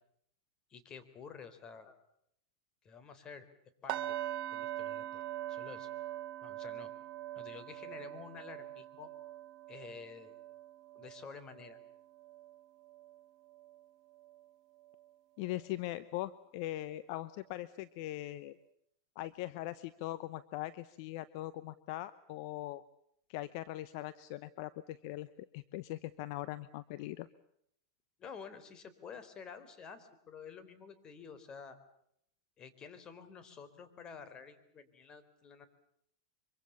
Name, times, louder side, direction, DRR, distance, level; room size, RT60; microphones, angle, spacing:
voice 1, 0.7-2.0 2.8-3.5 3.8-4.0 4.5-5.9 6.4-6.9 7.3-9.1 9.7-10.4 10.9-11.8 28.2-31.8 32.6-35.7, left 6 dB, 30° left, 10 dB, 3.8 m, -50 dB
sound 1, 3.9-13.8 14.1-14.4 14.9-15.0, right 13 dB, 45° right, 1.7 m, -43 dB
voice 2, 15.4-18.6 19.2-22.8 23.3-27.3, left 16 dB, 60° left, 15 dB, 0.9 m, -41 dB
25.0 x 24.5 x 7.1 m, 0.72 s
hypercardioid pair, 115°, 3 cm